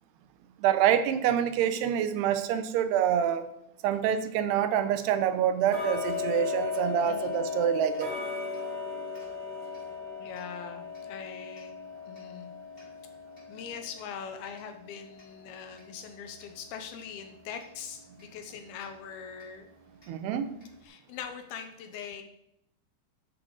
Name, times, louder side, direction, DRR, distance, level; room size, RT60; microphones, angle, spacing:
voice 1, 0.6-3.5 3.8-8.1 20.1-20.5, right 9 dB, 80° right, 10 dB, 2.7 m, -26 dB
Tick-tock, 5.7-16.5 17.0-17.1 17.6-17.7 18.2-18.3 18.8-18.9 19.4-19.5 20.0-20.1 20.6-20.7, left 5 dB, 15° left, 3.2 m, -37 dB
voice 2, 10.2-11.7 12.1-12.5 13.5-19.7 20.8-22.2, left 7 dB, 80° left, 7 dB, 2.5 m, -42 dB
12.5 x 7.8 x 3.8 m, 0.79 s
omnidirectional pair, 4.7 m